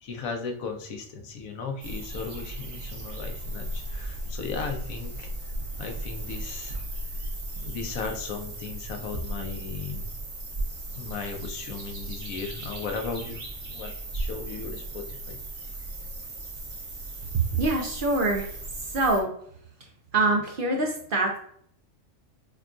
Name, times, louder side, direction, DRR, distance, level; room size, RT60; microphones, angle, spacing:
voice 1, 0.0-5.3 5.8-6.8 7.6-10.1 10.9-15.4, left 5 dB, 90° left, 4 dB, 1.2 m, -36 dB
sound 1, 1.8-19.2, right 1 dB, 70° right, 1.3 m, -36 dB
voice 2, 17.3-18.6 18.8-19.3 20.1-21.4, right 2 dB, 55° right, 1 dB, 0.6 m, -25 dB
6.3 x 2.3 x 2.5 m, 0.64 s
omnidirectional pair, 1.4 m